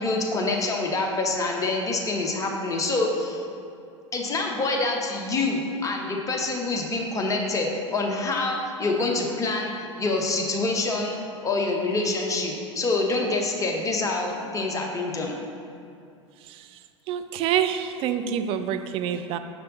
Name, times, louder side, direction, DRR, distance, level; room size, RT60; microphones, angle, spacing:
voice 1, 0.0-3.4 4.1-11.2 11.4-15.4, left 2 dB, 20° left, 0 dB, 0.8 m, -26 dB
voice 2, 17.1-19.4, right 9 dB, 35° right, 9 dB, 0.3 m, -26 dB
6.4 x 4.4 x 3.9 m, 2.5 s
figure-of-eight pair, 80°, 16 cm